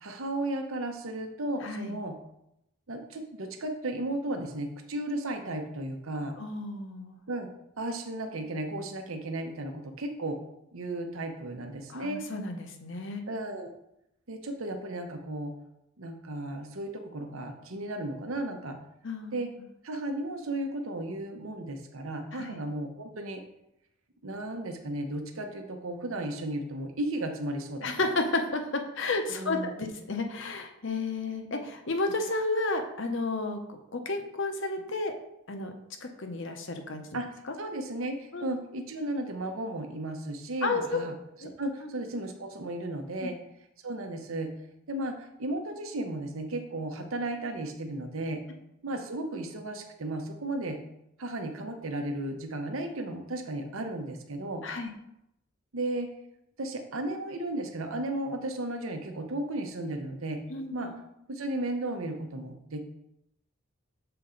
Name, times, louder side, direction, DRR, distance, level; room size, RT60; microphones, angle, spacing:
voice 1, 0.0-2.2 2.9-6.4 7.3-7.5 7.8-10.4 10.7-12.3 13.3-13.7 14.3-15.5 16.0-18.8 19.3-19.5 19.8-23.4 24.2-27.9 29.4-29.9 37.1-37.3 37.6-41.2 41.4-43.4 43.8-44.5 44.9-48.4 48.8-50.8 51.2-54.6 55.7-56.1 56.6-60.4 60.7-60.9 61.3-62.8, right 1 dB, 75° right, 5 dB, 0.8 m, -34 dB
voice 2, 1.6-2.0 6.4-7.2 11.9-13.2 19.0-19.3 22.3-22.6 27.8-35.1 35.5-35.7 36.0-37.0 38.3-38.5 40.6-41.0 41.4-41.5 41.8-41.9 43.2-43.3 54.6-54.9 60.5-61.0, left 3 dB, 55° left, 5 dB, 0.7 m, -32 dB
6.8 x 4.3 x 3.8 m, 0.82 s
head